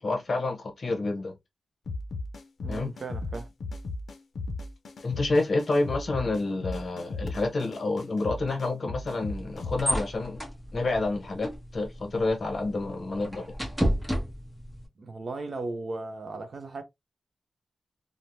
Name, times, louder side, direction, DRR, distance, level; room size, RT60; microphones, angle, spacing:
voice 1, 0.0-1.3 2.7-2.9 5.0-10.4 10.7-13.5, left 2 dB, 50° left, 0.9 m, -29 dB
sound 1, 1.9-9.8, left 2 dB, 85° left, 0.5 m, -36 dB
voice 2, 2.6-3.5 15.0-16.8, right 3 dB, 55° right, 0.5 m, -36 dB
sound 2, 9.1-14.9, equal, ahead, 0.8 m, -33 dB
3.1 x 2.1 x 2.6 m
wide cardioid pair, 135°, 0 cm